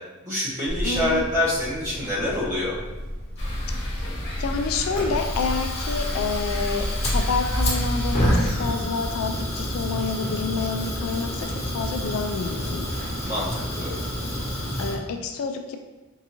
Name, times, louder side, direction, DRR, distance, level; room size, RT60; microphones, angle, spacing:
voice 1, 0.2-2.7 13.2-13.9, left 1 dB, 40° right, -8 dB, 1.1 m, -26 dB
Fire, 0.7-14.9, equal, 30° left, 1.0 m, -30 dB
voice 2, 0.8-1.3 3.9-4.1 4.4-12.9 14.8-15.8, left 4 dB, 70° left, 5 dB, 0.3 m, -28 dB
sound 1, 3.4-8.5, equal, 55° left, 1.1 m, -28 dB
4.5 x 2.6 x 2.8 m, 1.2 s
head